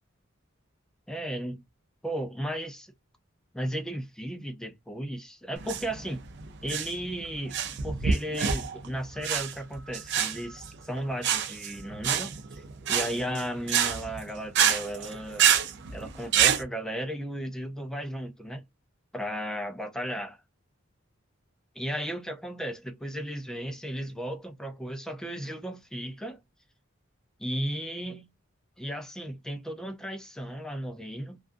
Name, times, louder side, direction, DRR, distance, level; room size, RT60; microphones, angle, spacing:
voice 1, 1.1-1.6 2.0-2.9 3.5-6.2 6.6-7.6 7.8-12.4 12.9-15.5 15.9-18.6 19.1-20.4 21.8-26.4 27.4-28.3 28.8-31.4, equal, 5° left, 0.4 m, -35 dB
sound 1, 5.6-16.6, right 8 dB, 55° right, 0.5 m, -27 dB
2.4 x 2.3 x 2.5 m
head